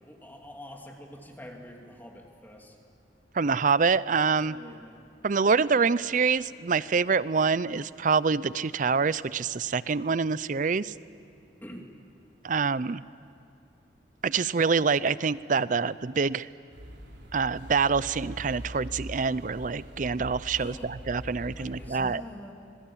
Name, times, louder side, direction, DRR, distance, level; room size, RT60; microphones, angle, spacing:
voice 1, 0.0-2.8 4.5-4.9 11.6-11.9 20.5-20.9 21.5-22.5, equal, 10° left, 1 dB, 2.7 m, -45 dB
voice 2, 3.3-4.6 5.2-10.9 12.4-13.0 14.2-16.5 17.3-22.2, right 5 dB, 45° right, 18 dB, 0.5 m, -26 dB
sound 1, 16.7-21.9, equal, 80° right, 3.4 m, -42 dB
26.5 x 22.0 x 8.7 m, 2.5 s
head